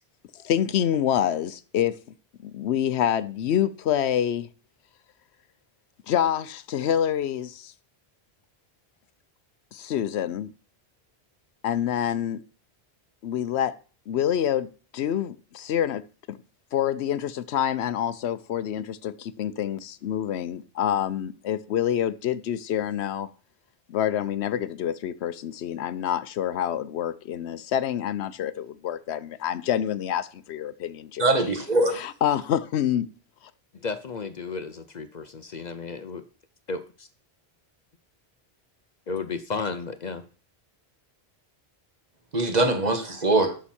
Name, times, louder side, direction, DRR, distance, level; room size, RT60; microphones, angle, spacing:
voice 1, 0.3-2.0 2.4-4.5 6.1-7.7 9.7-10.5 11.6-12.4 13.2-13.7 14.1-16.0 16.3-16.4 16.7-23.3 23.9-31.2 32.0-33.1, left 10 dB, 85° left, 0.9 m, -27 dB
voice 2, 31.2-32.0 42.3-43.6, right 2 dB, 40° right, 1.4 m, -22 dB
voice 3, 33.7-36.2 36.7-37.1 39.1-40.2, left 4 dB, 50° left, 0.7 m, -33 dB
11.5 x 6.1 x 4.3 m
omnidirectional pair, 1.1 m